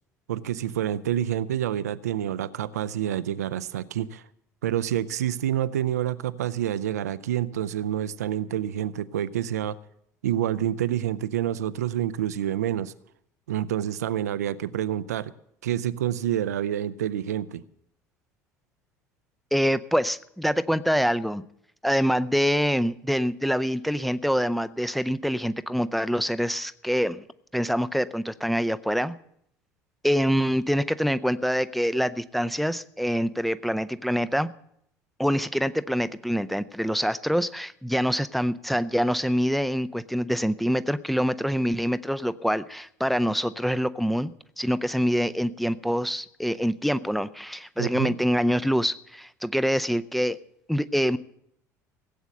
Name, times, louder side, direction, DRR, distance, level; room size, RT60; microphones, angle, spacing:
voice 1, 0.3-4.2 4.6-9.8 10.2-12.9 13.5-15.3 15.6-17.6 47.8-48.2, right 11 dB, 70° right, 14 dB, 0.5 m, -28 dB
voice 2, 19.5-21.4 21.8-27.2 27.5-29.2 30.0-34.5 35.2-44.3 44.6-50.4 50.7-51.2, equal, ahead, 14 dB, 0.5 m, -25 dB
16.5 x 8.1 x 7.5 m, 0.73 s
figure-of-eight pair, 65°, 9 cm